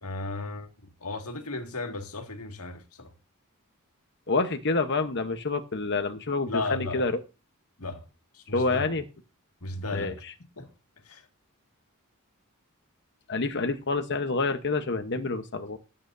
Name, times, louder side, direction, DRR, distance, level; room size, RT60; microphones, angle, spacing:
voice 1, 0.0-3.1 6.5-7.1 7.8-8.1 8.3-8.9 9.6-10.2 10.6-10.7 11.1-11.3, left 3 dB, 90° left, 2.1 m, -35 dB
voice 2, 4.3-7.1 8.5-9.0 9.9-10.3 13.3-15.8, left 3 dB, 55° left, 1.0 m, -28 dB
19.0 x 8.8 x 2.7 m
head